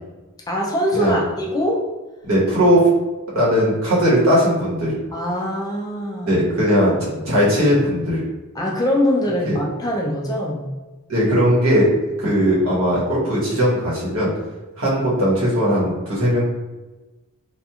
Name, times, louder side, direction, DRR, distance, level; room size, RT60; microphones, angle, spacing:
voice 1, 0.5-1.9 5.1-6.4 7.1-7.2 8.5-10.7, equal, 20° left, -1 dB, 0.4 m, -23 dB
voice 2, 2.2-2.8 3.3-4.9 6.3-8.2 9.4-9.6 11.1-11.9 12.2-14.3 14.8-16.4, equal, 80° right, -7 dB, 1.2 m, -18 dB
2.8 x 2.4 x 2.3 m, 1.1 s
head